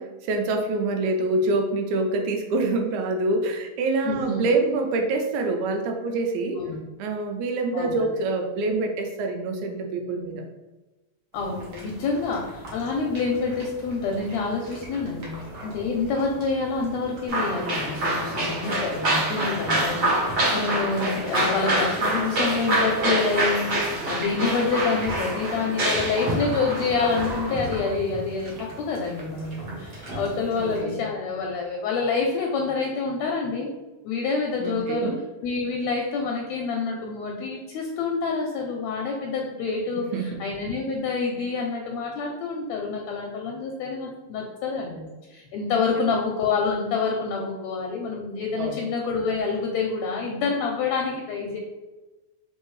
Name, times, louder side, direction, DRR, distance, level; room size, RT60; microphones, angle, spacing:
voice 1, 0.0-6.6 7.0-10.4 30.6-30.9 34.6-35.2 40.1-40.4 48.5-48.9, right 2 dB, 85° right, 4 dB, 2.0 m, -26 dB
voice 2, 4.1-4.5 6.6-6.8 7.7-8.0 11.3-33.7 34.0-35.1 35.4-51.6, left 4 dB, 80° left, 0 dB, 1.7 m, -27 dB
sound 1, 11.3-30.8, right 1 dB, 65° right, 1.1 m, -39 dB
sound 2, 17.3-27.5, right 1 dB, 45° right, 1.6 m, -26 dB
4.3 x 3.2 x 3.1 m, 1.1 s
omnidirectional pair, 3.4 m